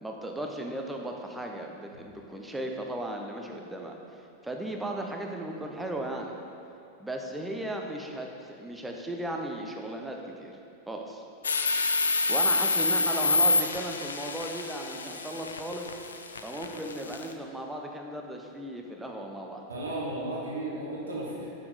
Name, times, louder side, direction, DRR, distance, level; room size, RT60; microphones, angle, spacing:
voice 1, 0.0-4.0 4.4-6.3 7.0-10.6 10.9-11.2 12.3-15.9 16.4-19.6, right 1 dB, 5° right, 1 dB, 0.7 m, -36 dB
sound 1, 11.4-17.3, left 3 dB, 70° left, 0.4 m, -27 dB
voice 2, 19.7-21.5, right 1 dB, 75° right, -4 dB, 1.1 m, -34 dB
6.5 x 5.7 x 4.0 m, 2.5 s
figure-of-eight pair, 90°, 0 cm